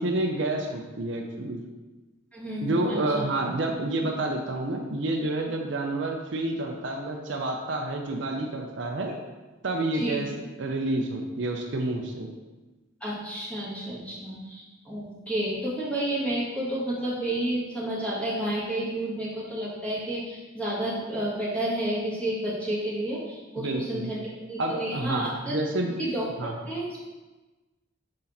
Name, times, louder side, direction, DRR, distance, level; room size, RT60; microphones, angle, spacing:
voice 1, 0.0-1.6 2.6-9.1 9.6-10.3 10.6-12.3 23.6-24.1 24.6-25.9 26.4-26.5, right 2 dB, 60° right, 2 dB, 0.6 m, -29 dB
voice 2, 2.3-3.2 9.9-10.2 13.0-25.6 26.0-27.1, right 1 dB, 5° left, -8 dB, 1.8 m, -31 dB
6.3 x 4.0 x 4.2 m, 1.2 s
head